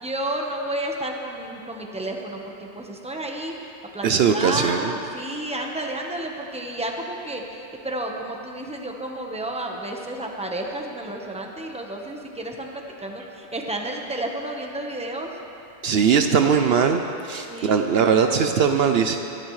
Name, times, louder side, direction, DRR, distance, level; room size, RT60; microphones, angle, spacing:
voice 1, 0.0-3.5 3.9-15.3 17.5-18.3, right 1 dB, 5° right, 1 dB, 1.1 m, -31 dB
voice 2, 4.0-4.9 15.8-19.2, right 6 dB, 65° right, 6 dB, 0.8 m, -20 dB
23.0 x 12.0 x 3.2 m, 2.9 s
omnidirectional pair, 1.1 m